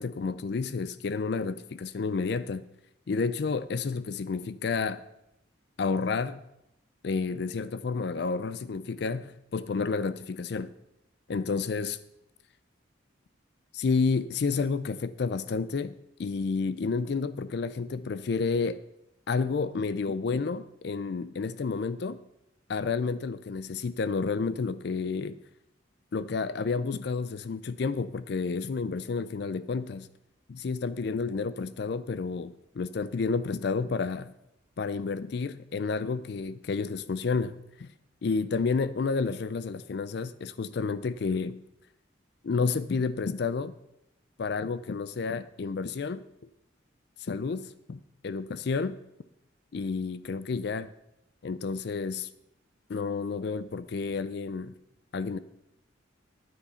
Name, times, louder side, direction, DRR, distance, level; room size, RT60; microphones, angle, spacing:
voice 1, 0.0-2.6 3.1-5.0 5.8-6.4 7.0-10.7 11.3-12.0 13.7-18.8 19.3-22.2 22.7-25.4 26.1-30.1 30.5-34.3 34.8-37.9 38.2-41.6 42.4-43.7 44.4-46.2 47.2-49.0 49.7-50.9 51.4-52.3 52.9-54.7 55.1-55.4, left 4 dB, 55° left, 15 dB, 0.4 m, -30 dB
9.8 x 9.5 x 5.6 m, 0.85 s
head